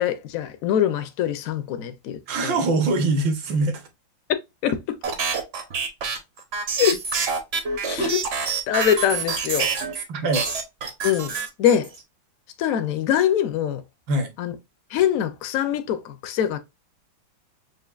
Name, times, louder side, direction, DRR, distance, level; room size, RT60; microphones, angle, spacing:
voice 1, 0.0-2.6 4.6-4.8 6.8-7.0 7.9-9.7 11.0-11.3 11.6-11.9 12.6-13.8 14.4-14.5 14.9-16.6, left 10 dB, 75° left, 0.7 m, -23 dB
voice 2, 2.3-3.9 10.1-10.5 14.1-14.3, right 2 dB, 75° right, 1.7 m, -23 dB
sound 1, 5.0-10.0 10.3-12.0, right 5 dB, 50° right, 0.8 m, -26 dB
6.2 x 2.5 x 2.3 m
omnidirectional pair, 2.1 m